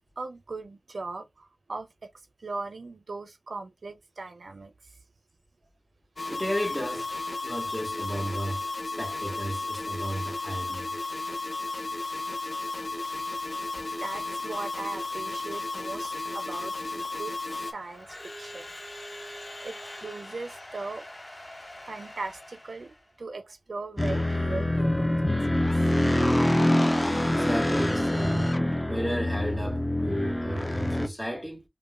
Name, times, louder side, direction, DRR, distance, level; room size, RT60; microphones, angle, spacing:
voice 1, 0.2-2.1 2.4-5.0 14.0-18.7 19.6-21.1 21.9-25.7, right 3 dB, 85° right, 0.4 m, -39 dB
sound 1, 6.2-17.7, left 2 dB, 60° left, 0.8 m, -34 dB
voice 2, 6.3-7.1 7.4-11.0 27.3-28.6 28.9-31.6, equal, ahead, 1.7 m, -33 dB
Crowd / Alarm, 17.5-23.1, left 1 dB, 40° left, 2.1 m, -44 dB
sound 2, 24.0-31.1, left 1 dB, 20° left, 0.5 m, -25 dB
5.2 x 2.1 x 2.3 m
wide cardioid pair, 60°, 0 cm